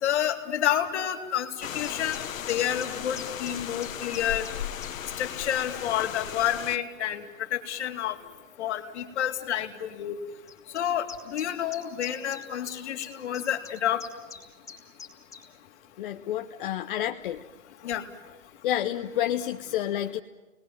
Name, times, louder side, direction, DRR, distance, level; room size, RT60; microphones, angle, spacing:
voice 1, 0.0-4.5 5.2-7.2 7.5-8.2 8.6-10.2 10.7-14.0 17.8-18.0, left 10 dB, 60° left, 5 dB, 2.6 m, -29 dB
sound 1, 1.6-6.8, left 10 dB, 85° left, 1.2 m, -36 dB
sound 2, 1.8-4.9 5.7-5.8 6.7-6.8 8.0-8.1 8.4-8.5 8.7-8.8 10.5-15.5, left 5 dB, 10° left, 2.9 m, -45 dB
voice 2, 16.0-17.4 18.6-20.2, left 12 dB, 40° left, 6 dB, 0.8 m, -29 dB
29.5 x 20.0 x 7.4 m, 1.2 s
hypercardioid pair, 155°, 39 cm